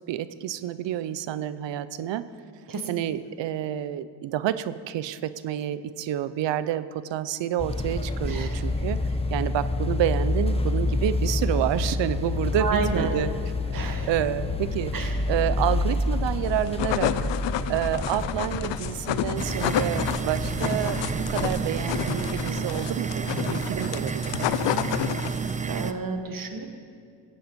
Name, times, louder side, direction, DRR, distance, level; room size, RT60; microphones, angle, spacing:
voice 1, 0.1-2.3 2.9-13.3 13.7-24.2, right 11 dB, 85° right, 15 dB, 0.6 m, -29 dB
sound 1, 7.6-22.5, left 2 dB, 15° left, 0.8 m, -28 dB
voice 2, 12.6-13.1 13.7-14.1 14.9-15.1 25.7-26.7, right 5 dB, 50° right, 5 dB, 1.4 m, -29 dB
sound 2, 16.5-25.6, left 12 dB, 90° left, 0.5 m, -30 dB
sound 3, 19.4-25.9, right 5 dB, 20° right, 0.3 m, -30 dB
16.5 x 7.9 x 5.2 m, 2.2 s
cardioid pair, 95°, 43 cm